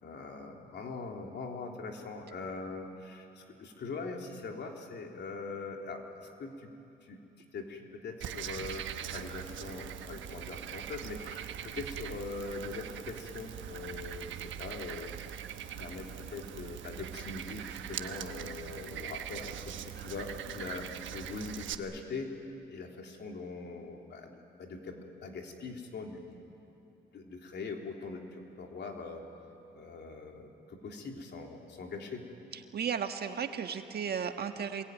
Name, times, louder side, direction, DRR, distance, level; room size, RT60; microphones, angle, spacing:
voice 1, 0.0-6.7 7.0-7.2 7.5-15.4 15.8-22.4 22.7-24.3 24.6-26.4 27.1-29.2 29.7-32.3, left 3 dB, 60° left, 2 dB, 3.4 m, -42 dB
Frog, 8.2-21.8, right 10 dB, 75° right, 1.2 m, -42 dB
voice 2, 32.7-34.8, right 7 dB, 55° right, 6 dB, 1.6 m, -34 dB
26.0 x 22.0 x 9.4 m, 2.9 s
cardioid pair, 90°, 20 cm